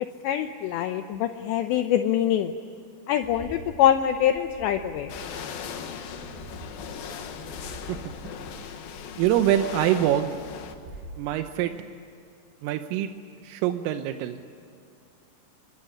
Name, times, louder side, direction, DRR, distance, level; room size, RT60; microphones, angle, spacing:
voice 1, 0.2-2.5 3.1-5.1, left 10 dB, 75° left, 7 dB, 2.8 m, -24 dB
Bird, 3.2-11.2, right 3 dB, 65° right, 7.6 m, -46 dB
sound 1, 5.1-10.7, left 7 dB, 60° left, 2.8 m, -38 dB
voice 2, 9.2-10.3 11.2-11.7 12.6-13.1 13.4-14.4, right 12 dB, 85° right, 7 dB, 3.5 m, -24 dB
25.0 x 23.5 x 10.0 m, 2.4 s
omnidirectional pair, 5.8 m